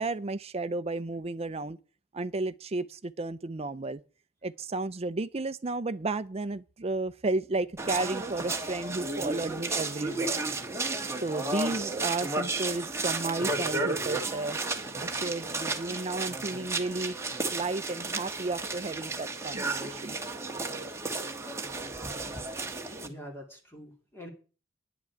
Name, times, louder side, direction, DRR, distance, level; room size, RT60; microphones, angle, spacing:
voice 1, 0.0-1.8 2.1-4.0 4.4-10.4 11.2-14.6 15.0-17.2 17.5-20.2 22.1-22.2, right 2 dB, 35° right, 0.6 m, -33 dB
sound 1, 7.8-23.1, right 3 dB, 15° right, 1.3 m, -33 dB
voice 2, 23.0-24.3, equal, 15° left, 2.6 m, -45 dB
10.5 x 6.0 x 8.6 m
head